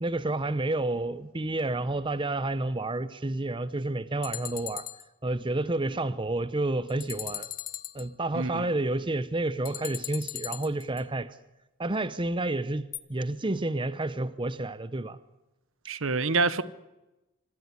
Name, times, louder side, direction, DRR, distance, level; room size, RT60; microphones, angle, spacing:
voice 1, 0.0-4.8 5.2-7.5 7.9-11.4 11.8-15.2, right 2 dB, 20° right, 0.7 m, -30 dB
sound 1, 4.2-5.0 6.9-8.1 9.7-11.0 12.9-13.0, left 13 dB, 40° left, 0.9 m, -38 dB
voice 2, 8.3-8.6 15.9-16.6, right 3 dB, 60° right, 1.0 m, -26 dB
25.5 x 12.5 x 9.7 m
head